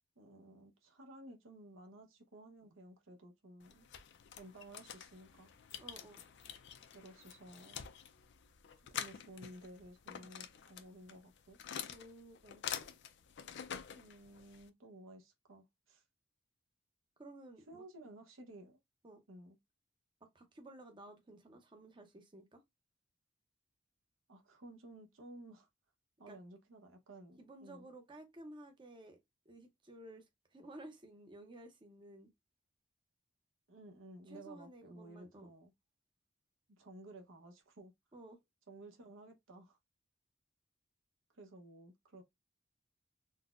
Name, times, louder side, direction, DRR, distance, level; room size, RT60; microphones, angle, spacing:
voice 1, 0.2-3.9 4.4-5.5 6.9-7.9 8.9-11.6 13.9-16.0 17.7-18.8 19.3-19.6 24.3-25.7 26.2-27.9 33.7-35.7 36.7-37.9 38.7-39.8 41.3-42.2, right 1 dB, 85° right, 0.9 m, -55 dB
sound 1, 3.6-14.7, left 9 dB, 60° left, 0.4 m, -47 dB
voice 2, 5.8-6.2 11.9-12.6 17.2-17.8 19.0-19.2 20.2-22.6 26.3-26.4 27.4-29.2 29.5-30.2 30.5-32.3 34.3-35.5 38.1-38.4, right 1 dB, 25° right, 0.6 m, -54 dB
4.0 x 2.1 x 2.4 m
head